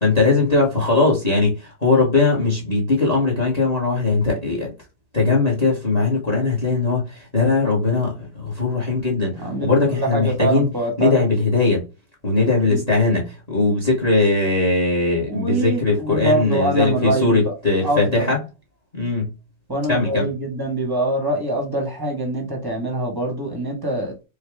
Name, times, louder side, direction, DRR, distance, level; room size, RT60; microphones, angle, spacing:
voice 1, 0.0-4.7 5.1-10.7 11.0-11.8 12.2-18.4 18.9-19.3 19.9-20.3, left 3 dB, 25° left, 0.9 m, -20 dB
voice 2, 9.4-11.2 12.7-12.8 15.3-17.5 17.8-18.3 19.7-24.1, right 1 dB, 20° right, 0.6 m, -24 dB
4.9 x 2.3 x 3.3 m
omnidirectional pair, 2.3 m